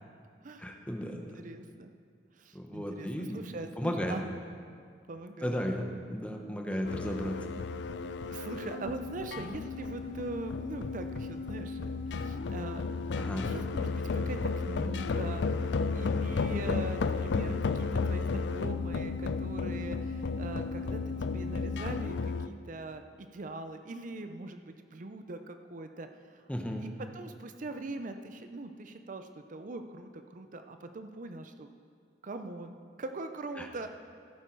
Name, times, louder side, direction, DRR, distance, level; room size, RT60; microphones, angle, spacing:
voice 1, 0.6-1.2 2.5-3.4 3.8-4.2 5.4-7.4 13.2-13.5 26.5-26.8 33.6-33.7, equal, 5° left, 2 dB, 1.0 m, -34 dB
voice 2, 1.1-1.9 2.3-4.2 5.1-5.9 8.3-12.8 13.4-14.4 14.7-26.4 26.8-31.7 32.2-33.9, right 2 dB, 50° right, 7 dB, 0.5 m, -42 dB
sound 1, 6.8-22.5, left 4 dB, 75° left, 0.4 m, -33 dB
15.0 x 9.1 x 4.6 m, 2.1 s
head